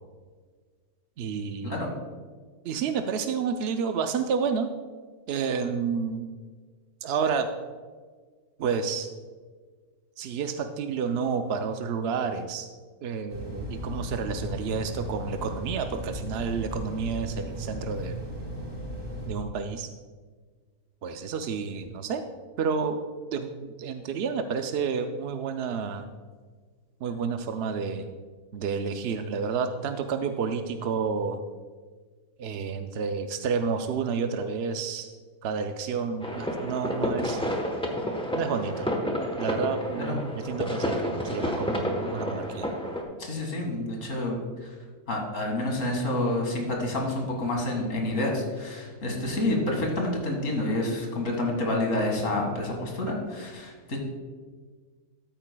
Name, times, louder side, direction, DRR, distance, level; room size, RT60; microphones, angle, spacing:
voice 1, 1.2-1.8 2.6-4.7 5.3-6.3 7.0-7.5 8.6-9.1 10.2-12.7 13.0-18.2 19.3-19.9 21.0-22.2 22.6-23.0 23.3-26.1 27.0-28.1 28.5-31.4 32.4-35.1 35.4-37.4 38.3-38.9 39.4-42.7, right 5 dB, 65° right, 7 dB, 0.6 m, -30 dB
sound 1, 13.3-19.3, left 1 dB, 20° right, 2.9 m, -36 dB
sound 2, 36.2-43.0, equal, 5° left, 0.7 m, -30 dB
voice 2, 43.2-44.7 45.1-54.0, left 1 dB, 60° left, 1 dB, 2.2 m, -28 dB
13.0 x 9.0 x 2.2 m, 1.5 s
omnidirectional pair, 1.6 m